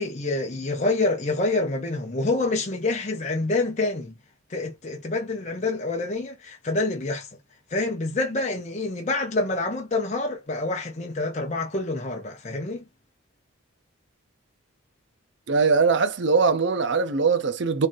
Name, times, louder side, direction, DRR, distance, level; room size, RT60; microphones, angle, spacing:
voice 1, 0.0-4.1 4.5-7.3 7.7-12.8, left 2 dB, 35° left, 0.7 m, -27 dB
voice 2, 15.5-17.9, right 4 dB, 55° right, 0.5 m, -21 dB
3.9 x 3.2 x 2.6 m
head